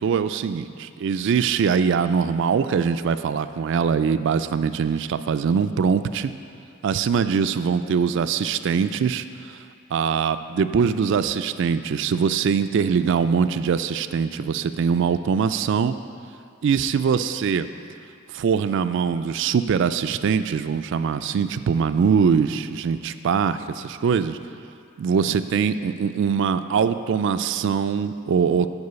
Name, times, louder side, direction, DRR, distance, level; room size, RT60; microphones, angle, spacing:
voice 1, 0.0-6.3 6.8-9.6 9.9-16.0 16.6-17.7 18.3-24.4 25.0-28.7, right 6 dB, 60° right, 12 dB, 0.3 m, -22 dB
9.6 x 4.7 x 6.8 m, 2.3 s
head